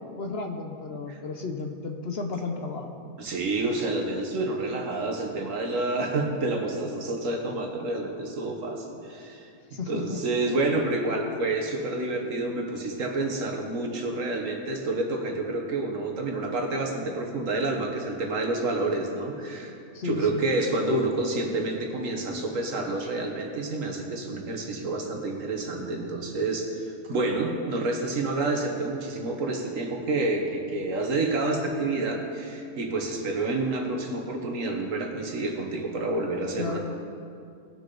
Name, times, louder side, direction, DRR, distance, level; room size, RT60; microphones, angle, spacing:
voice 1, 0.2-2.9 9.7-10.2 19.9-20.4 36.6-36.8, left 4 dB, 55° left, 3 dB, 0.9 m, -33 dB
voice 2, 3.2-9.5 9.9-19.7 20.0-36.8, right 2 dB, 70° right, 2 dB, 1.6 m, -29 dB
19.5 x 6.6 x 3.9 m, 2.4 s
omnidirectional pair, 1.4 m